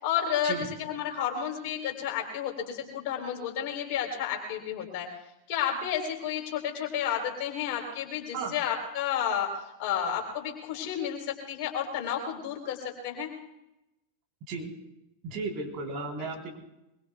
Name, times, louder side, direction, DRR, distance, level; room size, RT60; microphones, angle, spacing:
voice 1, 0.0-5.1 5.5-13.3 16.2-16.3, left 8 dB, 45° left, 2 dB, 3.9 m, -31 dB
voice 2, 15.2-16.6, right 3 dB, 40° right, 0 dB, 3.9 m, -34 dB
24.0 x 23.0 x 2.4 m, 0.90 s
figure-of-eight pair, 90°, 0 cm